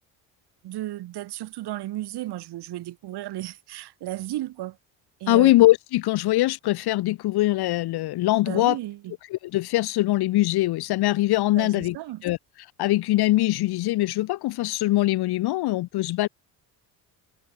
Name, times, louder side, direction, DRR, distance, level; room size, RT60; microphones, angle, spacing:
voice 1, 0.6-4.8 5.2-5.5 8.4-9.1 11.5-12.2, right 15 dB, 75° right, 5.1 m, -34 dB
voice 2, 5.3-8.8 9.3-12.0 12.2-12.4 12.8-16.3, left 17 dB, 70° left, 1.0 m, -22 dB
cardioid pair, 95°, 40 cm